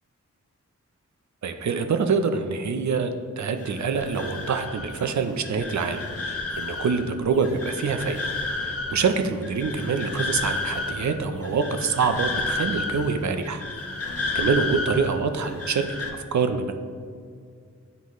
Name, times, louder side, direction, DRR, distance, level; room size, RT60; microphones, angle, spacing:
voice 1, 1.4-3.1 3.4-8.2 8.6-13.6 14.3-16.8, right 5 dB, 70° right, 7 dB, 0.6 m, -25 dB
sound 1, 3.6-16.1, left 3 dB, 50° left, 0.8 m, -32 dB
9.4 x 4.0 x 3.1 m, 2.1 s
wide cardioid pair, 75°, 30 cm